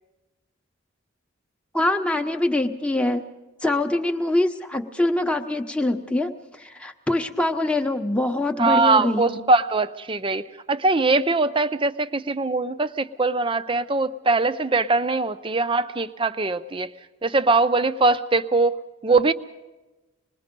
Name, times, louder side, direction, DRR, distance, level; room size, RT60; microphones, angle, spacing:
voice 1, 1.7-3.2 3.6-9.4, left 1 dB, 5° left, 4 dB, 0.9 m, -24 dB
voice 2, 8.6-16.9 17.2-18.8 19.0-19.3, right 3 dB, 25° right, 12 dB, 0.6 m, -21 dB
26.0 x 20.5 x 5.3 m, 1.1 s
head